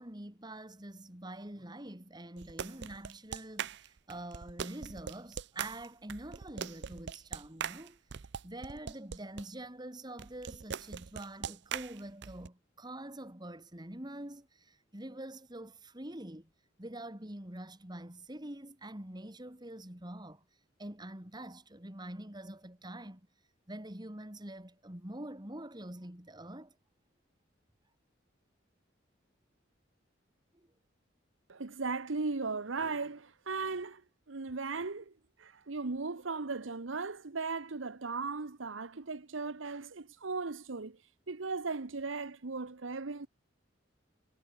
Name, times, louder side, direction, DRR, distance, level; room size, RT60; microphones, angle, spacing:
voice 1, 0.0-8.0 8.4-16.5 16.8-20.4 20.8-23.2 23.7-26.7 30.5-30.7, right 1 dB, 20° right, 2.7 m, -45 dB
sound 1, 2.4-9.4 10.2-12.5, right 7 dB, 60° right, 0.6 m, -41 dB
voice 2, 31.5-34.0 34.3-35.1 35.4-41.0 41.3-43.3, right 4 dB, 85° right, 1.0 m, -37 dB
head